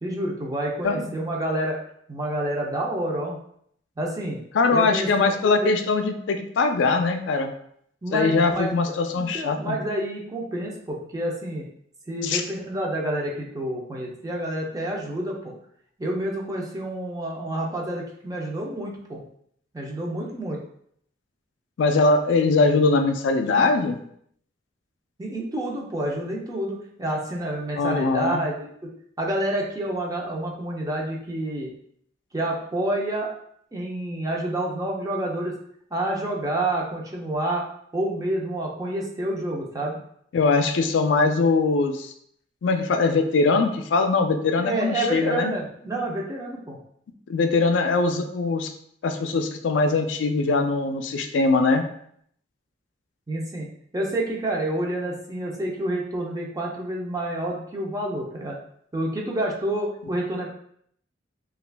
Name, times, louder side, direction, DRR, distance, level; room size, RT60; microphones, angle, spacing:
voice 1, 0.0-1.8 2.1-3.4 4.0-4.4 4.7-5.7 8.0-11.6 12.1-15.5 16.0-19.2 19.7-20.6 25.2-28.7 29.2-31.7 32.3-33.3 33.7-35.6 35.9-37.7 37.9-40.0 44.6-46.8 53.3-53.7 53.9-58.6 58.9-60.5, right 1 dB, 20° right, -2 dB, 0.5 m, -28 dB
voice 2, 4.5-7.5 8.1-9.8 12.2-12.4 21.8-24.0 27.8-28.4 40.3-42.1 42.6-45.5 47.3-48.7 49.0-51.8, left 3 dB, 70° left, 6 dB, 0.4 m, -21 dB
2.9 x 2.4 x 3.3 m, 0.68 s
head